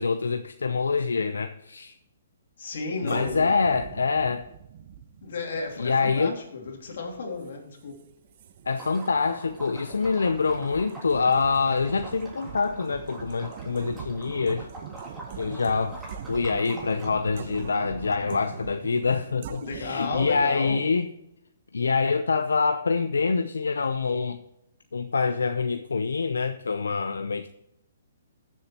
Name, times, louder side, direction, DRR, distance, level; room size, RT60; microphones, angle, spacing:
voice 1, 0.0-2.0 3.0-4.5 5.8-6.4 8.7-14.7 15.4-16.0 16.3-21.1 21.7-24.4 24.9-27.5, left 4 dB, 90° left, 0.6 m, -25 dB
voice 2, 2.6-3.5 5.2-8.1 19.6-20.8, left 4 dB, 65° left, 2.8 m, -33 dB
sound 1, 3.1-20.7, right 8 dB, 50° right, 0.9 m, -42 dB
Liquid, 8.7-18.6, right 1 dB, 10° right, 3.2 m, -45 dB
14.5 x 7.3 x 3.0 m
hypercardioid pair, 145°, 0 cm